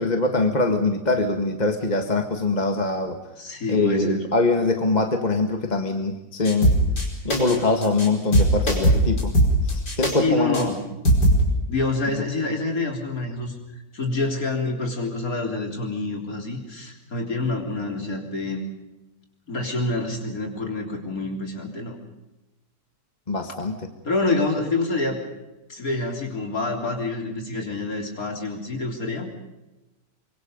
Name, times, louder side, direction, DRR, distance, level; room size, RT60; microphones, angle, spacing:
voice 1, 0.0-3.2 3.7-6.8 7.2-9.3 9.6-10.7 23.3-23.8, left 3 dB, 25° left, 4 dB, 1.7 m, -23 dB
voice 2, 3.4-4.3 10.2-10.8 11.7-13.5 13.9-18.6 19.5-22.0 24.1-25.2 25.7-29.3, left 2 dB, 50° left, 2 dB, 4.0 m, -27 dB
sound 1, 6.4-7.0 7.3-7.6 7.8-8.1 8.3-10.1 10.5-10.6 11.0-11.4, right 1 dB, 65° left, 5.7 m, -19 dB
24.5 x 23.5 x 5.3 m, 1.0 s
omnidirectional pair, 1.9 m